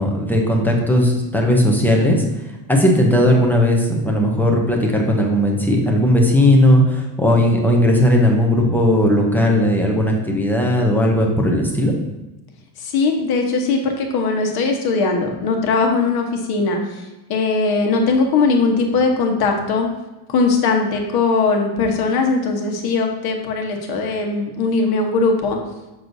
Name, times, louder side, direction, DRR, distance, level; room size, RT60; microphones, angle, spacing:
voice 1, 0.0-2.2 2.7-11.9, left 1 dB, 5° left, 0 dB, 0.5 m, -16 dB
voice 2, 12.8-17.0 17.3-19.9 20.3-25.6, left 4 dB, 50° left, 3 dB, 1.2 m, -19 dB
6.4 x 6.1 x 2.6 m, 1.1 s
cardioid pair, 150°, 48 cm